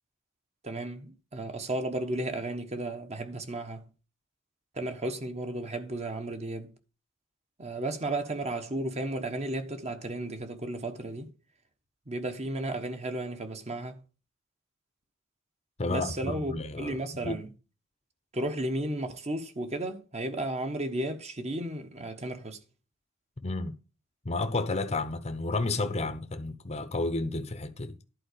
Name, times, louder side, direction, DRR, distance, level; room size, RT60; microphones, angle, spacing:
voice 1, 0.6-3.8 4.7-6.7 7.6-11.3 12.1-14.0 15.9-17.5 18.3-22.6, right 1 dB, 30° right, 1.2 m, -34 dB
voice 2, 15.8-17.0 17.2-17.4 23.4-23.8 24.2-27.9, left 2 dB, 30° left, 0.8 m, -31 dB
11.0 x 4.6 x 6.6 m
head